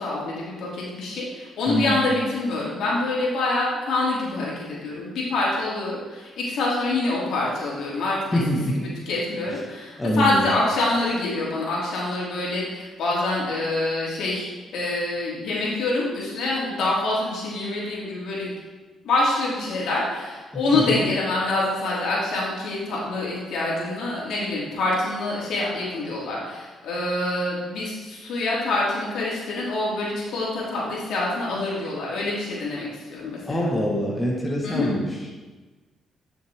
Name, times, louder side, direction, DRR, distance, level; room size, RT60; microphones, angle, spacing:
voice 1, 0.0-8.4 8.7-18.5 19.0-33.7 34.6-34.9, left 2 dB, 75° left, -5 dB, 2.7 m, -26 dB
voice 2, 1.7-2.0 8.3-8.9 10.0-10.5 20.7-21.0 33.5-35.0, equal, 15° left, -2 dB, 1.5 m, -24 dB
10.5 x 6.4 x 3.6 m, 1.3 s
cardioid pair, 90°, 0 cm